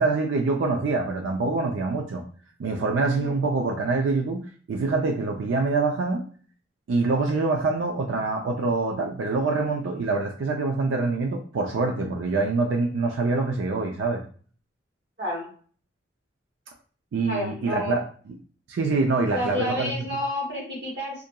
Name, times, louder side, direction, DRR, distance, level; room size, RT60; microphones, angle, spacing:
voice 1, 0.0-2.2 2.6-6.2 6.9-14.2 17.1-18.0 18.7-19.9, right 3 dB, 90° right, 2 dB, 0.4 m, -25 dB
voice 2, 17.2-18.0 19.3-21.2, left 1 dB, 60° right, -5 dB, 1.1 m, -30 dB
2.7 x 2.4 x 2.2 m, 0.43 s
head